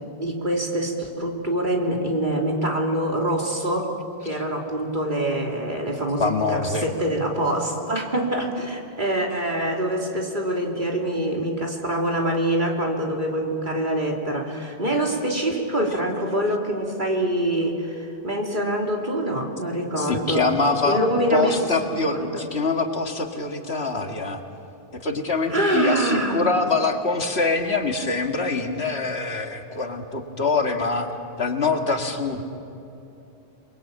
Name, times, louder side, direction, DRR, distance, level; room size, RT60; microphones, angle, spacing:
voice 1, 0.0-3.9 4.2-20.5 20.8-21.7 22.1-22.4 25.5-26.5, right 1 dB, 45° right, 0 dB, 3.4 m, -25 dB
voice 2, 6.2-6.9 20.0-21.0 21.3-24.4 25.0-31.1 31.4-32.4, left 3 dB, 70° left, 4 dB, 2.2 m, -24 dB
29.0 x 22.0 x 8.8 m, 2.8 s
omnidirectional pair, 1.1 m